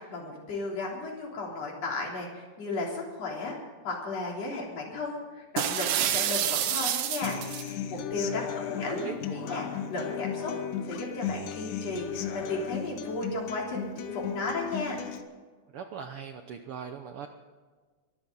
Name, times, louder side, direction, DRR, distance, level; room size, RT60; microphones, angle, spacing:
voice 1, 0.0-3.6 3.8-10.6 10.9-15.0, left 3 dB, 55° left, -2 dB, 4.6 m, -35 dB
sound 1, 5.6-7.7, right 10 dB, 90° right, 2.5 m, -28 dB
Human voice / Acoustic guitar, 7.2-15.2, left 8 dB, 90° left, 2.6 m, -35 dB
voice 2, 8.8-9.6 15.7-17.3, right 7 dB, 70° right, 6 dB, 1.3 m, -40 dB
23.0 x 13.5 x 4.0 m, 1.4 s
omnidirectional pair, 3.5 m